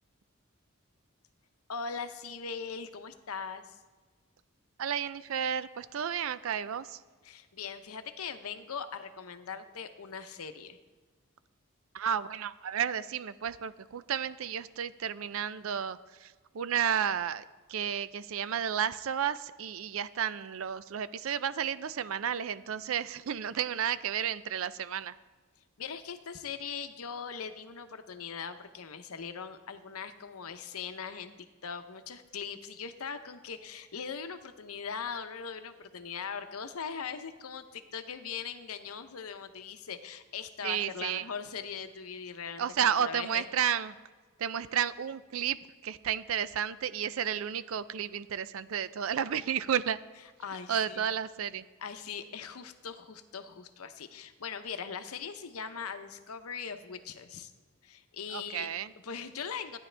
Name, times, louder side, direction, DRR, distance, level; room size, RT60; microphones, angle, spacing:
voice 1, 1.7-3.8 7.2-10.8 25.8-31.3 31.6-43.5 50.4-51.1 51.8-57.5 57.8-58.7 59.0-59.8, left 6 dB, 90° left, 9 dB, 0.8 m, -40 dB
voice 2, 4.8-7.0 11.9-17.4 17.7-25.1 40.6-41.3 42.6-43.9 44.4-45.6 45.8-50.0 50.7-51.6 58.3-58.9, right 8 dB, 70° right, 15 dB, 0.4 m, -32 dB
15.0 x 9.9 x 3.4 m, 1.4 s
head